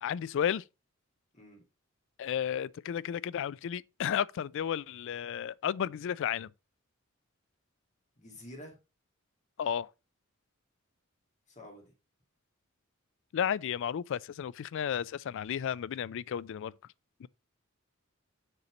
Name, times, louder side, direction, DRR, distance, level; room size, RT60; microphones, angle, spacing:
voice 1, 0.0-0.6 2.2-6.5 9.6-9.9 13.3-16.7 17.2-17.3, left 9 dB, 65° left, 0.3 m, -33 dB
voice 2, 8.2-8.8 11.5-11.8, left 1 dB, 35° left, 2.5 m, -48 dB
6.8 x 4.3 x 5.1 m
head